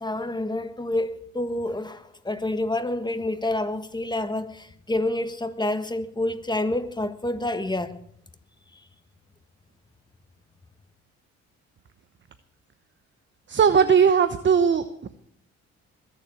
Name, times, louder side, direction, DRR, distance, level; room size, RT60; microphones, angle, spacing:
voice 1, 0.0-8.0, left 1 dB, 15° left, 10 dB, 1.5 m, -28 dB
voice 2, 13.5-14.8, right 7 dB, 40° right, 11 dB, 1.0 m, -18 dB
21.0 x 7.4 x 8.7 m, 0.67 s
cardioid pair, 90°, 30 cm